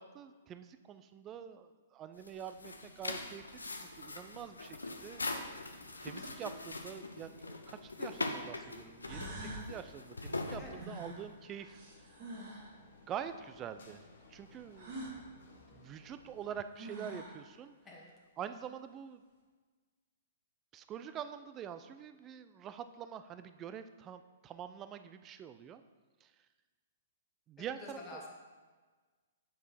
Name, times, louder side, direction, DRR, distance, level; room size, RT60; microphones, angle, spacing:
voice 1, 0.0-5.2 6.0-11.8 13.1-14.0 14.3-15.2 15.7-17.7 18.4-19.2 20.7-25.8 26.2-26.3 27.5-28.2, right 8 dB, 25° right, 10 dB, 0.3 m, -46 dB
sound 1, 2.1-11.3, left 2 dB, 80° left, 0.6 m, -42 dB
sound 2, 3.0-16.5, left 3 dB, 60° left, 1.0 m, -60 dB
sound 3, 8.6-8.7 9.0-9.7 10.7-12.7 14.7-15.2 16.4-16.5 16.8-17.4, right 1 dB, 45° right, 1.9 m, -45 dB
voice 2, 27.8-28.3, left 2 dB, 15° left, -3 dB, 1.3 m, -48 dB
7.6 x 4.6 x 3.4 m, 1.4 s
figure-of-eight pair, 115°, 0 cm